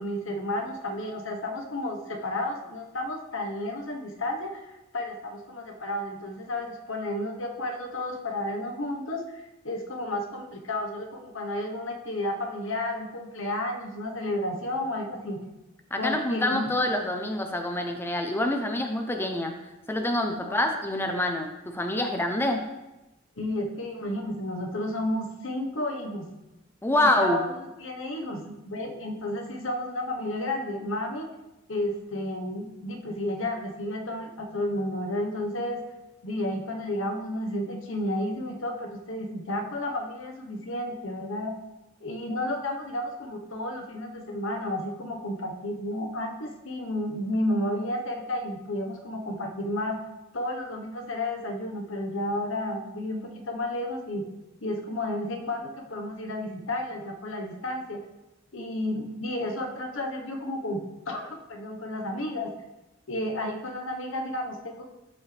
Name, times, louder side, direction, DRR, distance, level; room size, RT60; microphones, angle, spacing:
voice 1, 0.0-15.4 16.0-16.7 20.4-20.6 23.4-26.3 27.0-31.3 31.7-35.8 36.2-41.5 42.0-50.0 50.3-54.2 54.6-58.0 58.5-62.5 63.1-64.9, left 1 dB, 75° left, 2 dB, 1.2 m, -32 dB
voice 2, 15.9-19.5 19.9-22.7 26.8-27.4, left 1 dB, 10° left, 4 dB, 0.7 m, -26 dB
13.0 x 5.3 x 3.4 m, 0.98 s
head